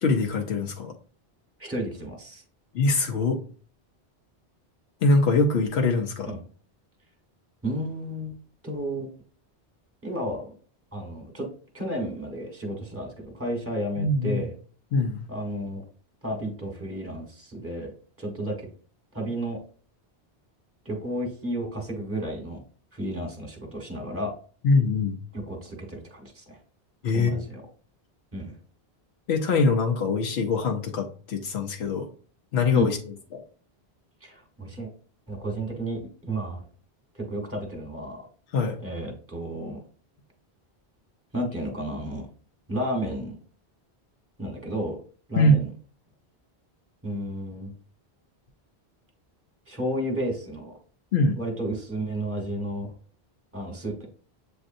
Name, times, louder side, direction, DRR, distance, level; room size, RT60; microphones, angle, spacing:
voice 1, 0.0-0.9 2.7-3.4 5.0-6.3 14.0-14.5 14.9-15.3 24.6-25.2 27.0-27.4 29.3-32.1 32.5-33.0 33.3-33.4 38.5-38.8 45.4-45.6 51.1-51.4, left 3 dB, 90° left, 3 dB, 0.9 m, -23 dB
voice 2, 1.6-2.4 6.3-6.4 7.6-8.4 8.6-9.1 10.0-10.5 10.9-11.5 11.7-14.5 15.3-15.8 16.2-17.9 18.2-18.7 19.1-19.6 20.8-22.6 22.9-24.3 25.3-26.6 27.1-27.6 28.3-28.6 32.7-32.9 34.2-34.9 35.3-36.7 37.1-38.3 38.8-39.8 41.3-42.3 42.7-43.3 44.4-45.0 45.3-45.7 47.0-47.7 49.7-50.7 51.4-52.9 53.5-54.1, right 1 dB, 15° right, 1 dB, 1.1 m, -32 dB
7.6 x 2.6 x 2.5 m, 0.42 s
omnidirectional pair, 1.1 m